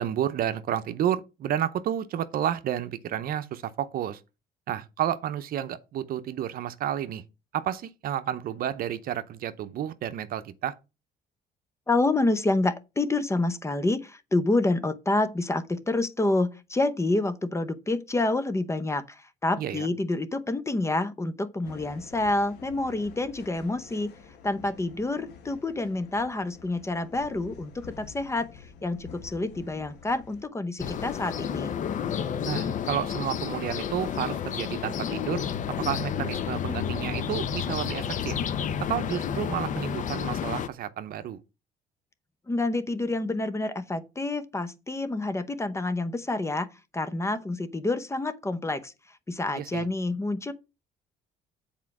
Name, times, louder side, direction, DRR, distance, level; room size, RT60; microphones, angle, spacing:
voice 1, 0.0-4.2 4.7-7.2 7.5-10.7 19.6-19.9 32.4-35.4 35.8-38.4 38.8-41.4 49.5-49.9, right 10 dB, 60° right, 0.7 m, -31 dB
voice 2, 11.9-24.1 24.4-31.8 42.5-46.7 46.9-48.9 49.3-50.5, left 2 dB, 15° left, 0.8 m, -28 dB
sound 1, 21.6-30.4, left 6 dB, 75° left, 1.4 m, -48 dB
sound 2, 30.8-40.7, left 8 dB, 50° left, 0.7 m, -31 dB
7.4 x 4.4 x 6.0 m
cardioid pair, 110°, 17 cm